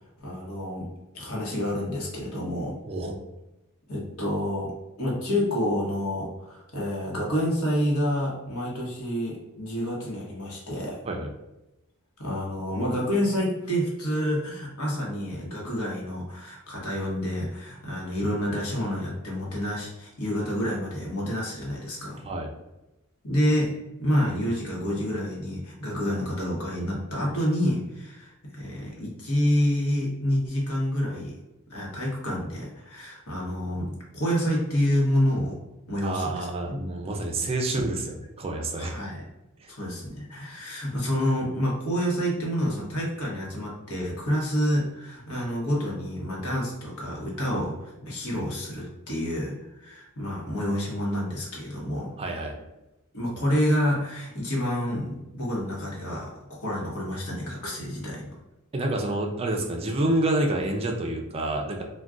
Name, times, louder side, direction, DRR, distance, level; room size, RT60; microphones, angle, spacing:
voice 1, 0.2-0.9 1.1-2.8 3.9-4.7 5.0-11.0 12.2-22.3 23.2-23.7 24.0-31.3 31.7-35.6 35.9-36.8 38.8-39.2 39.7-52.1 53.1-58.3, equal, 70° left, -4 dB, 1.0 m, -28 dB
voice 2, 2.9-3.2 11.0-11.3 22.3-22.5 36.0-38.9 39.6-39.7 52.2-52.6 58.7-61.8, right 2 dB, 25° right, 1 dB, 0.3 m, -28 dB
2.3 x 2.2 x 3.6 m, 0.96 s
head